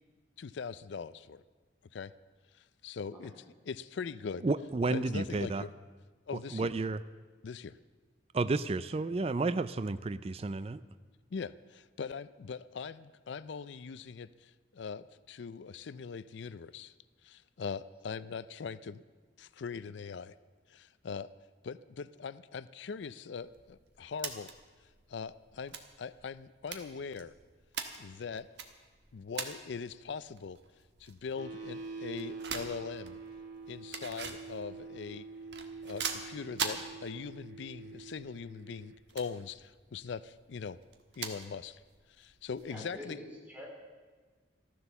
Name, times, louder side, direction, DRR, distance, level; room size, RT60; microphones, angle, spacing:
voice 1, 0.4-1.4 1.9-2.1 2.5-4.5 4.9-5.7 6.3-6.7 7.4-7.8 11.3-16.9 17.2-19.0 19.4-20.3 20.7-21.3 21.6-24.5 25.1-27.3 28.0-28.5 29.1-30.6 31.0-33.2 33.7-35.3 35.8-40.8 41.2-41.8 42.2-43.2, left 5 dB, 65° left, 16 dB, 0.4 m, -41 dB
voice 2, 4.4-5.6 6.5-7.0 8.3-10.8, right 3 dB, 30° right, 14 dB, 0.4 m, -31 dB
sound 1, 23.4-43.0, right 6 dB, 60° right, 1.4 m, -45 dB
sound 2, 31.4-39.0, right 4 dB, 75° right, 2.9 m, -46 dB
voice 3, 42.7-43.7, left 1 dB, 10° right, -1 dB, 3.0 m, -45 dB
14.0 x 13.5 x 6.9 m, 1.4 s
head